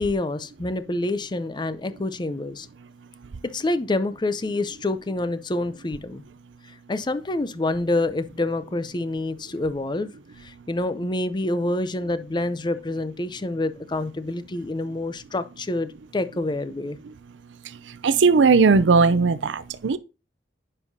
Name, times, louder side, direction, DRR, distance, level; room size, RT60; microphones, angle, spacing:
voice 1, 0.0-2.7 3.4-6.2 6.9-10.1 10.4-17.0, left 2 dB, 25° left, 0.5 m, -27 dB
voice 2, 18.0-20.0, right 4 dB, 90° right, 0.5 m, -17 dB
9.3 x 5.5 x 2.7 m
head